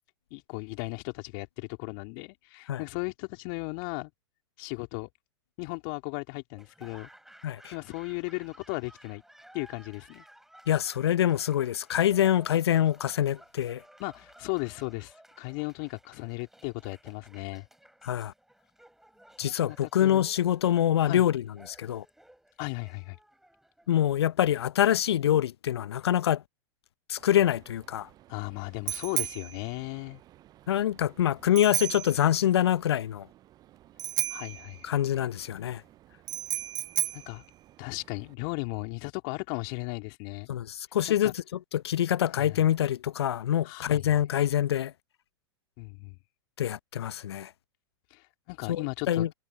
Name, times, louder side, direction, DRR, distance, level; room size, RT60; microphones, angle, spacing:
voice 1, 0.3-4.1 4.6-5.1 5.6-7.1 7.7-9.2 9.5-10.2 14.0-17.7 19.6-20.3 21.0-21.2 22.6-23.2 28.3-30.2 34.3-34.9 37.1-37.4 37.8-40.5 41.1-41.3 42.4-42.6 43.6-44.1 45.8-46.2 48.1-49.3, left 35 dB, 45° left, 3.1 m, -36 dB
Laughter / Applause, 6.5-24.6, right 1 dB, ahead, 7.7 m, -56 dB
voice 2, 10.7-13.8 18.0-18.3 19.4-22.0 23.9-26.4 27.1-28.1 30.7-33.3 34.8-35.8 40.5-41.4 41.7-44.9 46.6-47.5 48.7-49.3, left 11 dB, 65° left, 0.9 m, -25 dB
Bicycle bell, 27.2-38.3, right 13 dB, 25° right, 0.7 m, -36 dB
figure-of-eight pair, 100°, 14 cm